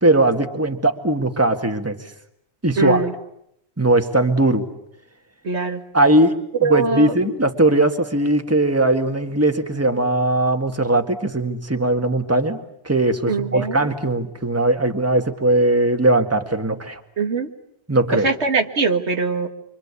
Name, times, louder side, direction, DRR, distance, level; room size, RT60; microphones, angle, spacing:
voice 1, 0.0-2.0 2.6-3.1 3.8-4.6 5.9-17.0 17.9-18.3, right 1 dB, 15° right, 6 dB, 1.8 m, -19 dB
voice 2, 2.8-3.1 5.4-5.8 6.6-7.1 13.3-13.9 17.2-17.5 18.1-19.5, right 4 dB, 90° right, 5 dB, 2.1 m, -22 dB
27.0 x 25.5 x 8.4 m, 0.75 s
omnidirectional pair, 1.1 m